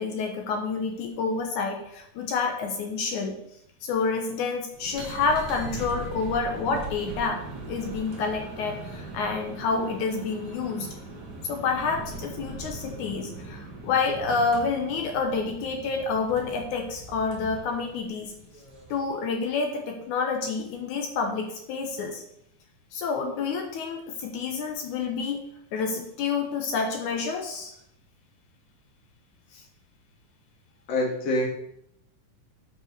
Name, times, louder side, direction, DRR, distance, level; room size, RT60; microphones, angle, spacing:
voice 1, 0.0-3.4 3.8-7.4 7.7-10.9 11.4-18.3 18.9-22.2 22.9-25.4 25.7-27.7 29.5-29.6, left 4 dB, 70° left, 3 dB, 2.2 m, -28 dB
sound 1, 4.7-19.1, right 2 dB, 40° right, 1.6 m, -40 dB
voice 2, 30.9-31.5, left 1 dB, 50° left, -2 dB, 2.9 m, -25 dB
7.9 x 5.2 x 6.7 m, 0.77 s
omnidirectional pair, 4.1 m